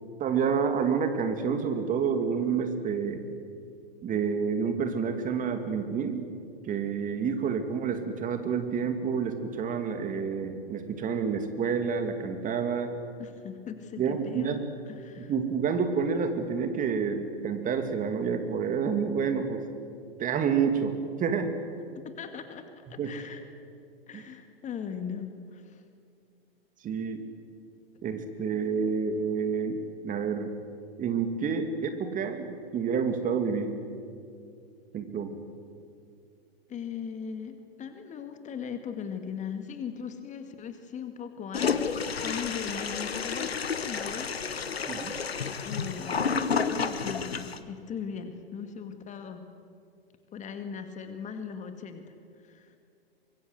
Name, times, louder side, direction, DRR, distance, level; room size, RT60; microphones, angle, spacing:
voice 1, 0.2-3.2 4.0-6.3 6.6-12.9 14.0-14.6 15.3-19.6 20.2-21.5 23.0-23.1 24.1-24.2 26.8-27.2 28.0-30.5 31.0-33.7 34.9-35.4 44.9-45.1, right 6 dB, 25° right, 7 dB, 2.6 m, -29 dB
voice 2, 13.2-14.6 14.9-15.3 21.9-23.4 24.1-25.8 36.7-46.2 46.7-49.5 50.3-52.0 52.4-52.8, left 7 dB, 25° left, 7 dB, 2.1 m, -39 dB
Toilet flush, 41.5-47.6, left 5 dB, 80° left, 1.4 m, -30 dB
25.0 x 22.0 x 8.1 m, 2.3 s
figure-of-eight pair, 100°, 30 cm